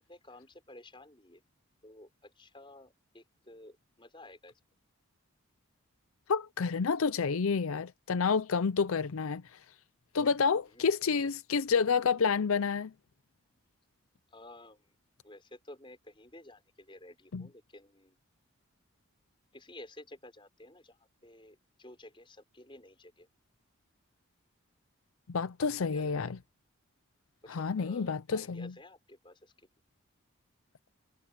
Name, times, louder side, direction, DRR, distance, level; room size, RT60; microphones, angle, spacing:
voice 1, 0.0-1.4 1.8-4.5 10.7-10.8 14.3-14.9 15.2-18.2 19.5-21.0 21.2-23.3 25.6-26.1 27.4-29.5, left 1 dB, 25° left, 5.7 m, -53 dB
voice 2, 6.3-9.4 10.1-12.9 17.3-17.5 25.3-26.4 27.5-28.7, left 5 dB, 75° left, 0.5 m, -29 dB
head